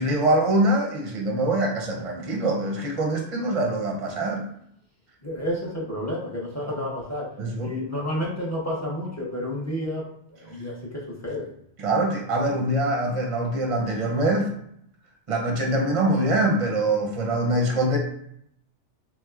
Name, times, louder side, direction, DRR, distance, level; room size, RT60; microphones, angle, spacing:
voice 1, 0.0-4.4 6.6-6.8 7.4-7.7 11.8-14.5 15.3-18.0, right 1 dB, 40° right, 0 dB, 0.5 m, -24 dB
voice 2, 5.2-7.3 7.6-10.1 10.4-11.5, left 1 dB, 20° left, -4 dB, 0.5 m, -30 dB
3.4 x 3.0 x 2.4 m, 0.72 s
omnidirectional pair, 1.2 m